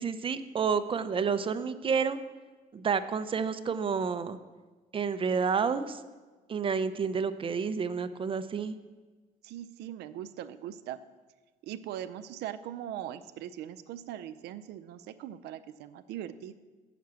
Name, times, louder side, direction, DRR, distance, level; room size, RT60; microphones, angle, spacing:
voice 1, 0.0-2.2 2.7-4.4 4.9-6.0 6.5-8.8, right 6 dB, 30° right, 11 dB, 0.5 m, -29 dB
voice 2, 9.4-11.0 11.6-16.5, right 11 dB, 80° right, 11 dB, 0.5 m, -40 dB
7.1 x 5.9 x 7.6 m, 1.3 s
cardioid pair, 110°, 17 cm